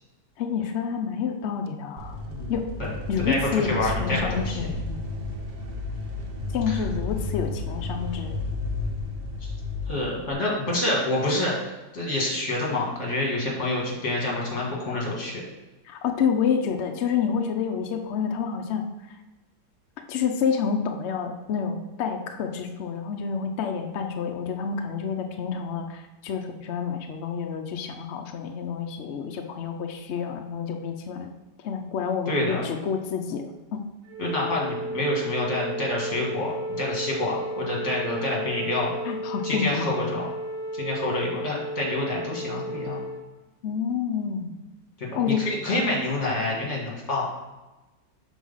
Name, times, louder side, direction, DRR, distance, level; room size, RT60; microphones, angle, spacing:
voice 1, 0.4-2.2 2.5-2.7 3.1-5.0 6.5-8.4 15.8-19.2 20.1-31.3 31.6-33.8 39.0-39.9 43.6-44.6 45.2-45.5, left 6 dB, 75° left, 5 dB, 0.6 m, -28 dB
sound 1, 2.0-10.3, left 2 dB, 45° right, 0.8 m, -32 dB
voice 2, 3.2-4.7 6.7-6.8 9.4-9.5 9.9-11.5 11.9-15.4 32.3-32.6 34.2-38.9 39.4-40.3 40.7-43.0 45.0-47.2, left 1 dB, 45° left, -3 dB, 2.1 m, -27 dB
Wind instrument woodwind instrument, 34.1-43.2, right 1 dB, 65° right, 2.5 m, -33 dB
6.2 x 4.2 x 5.5 m, 1.1 s
omnidirectional pair, 1.8 m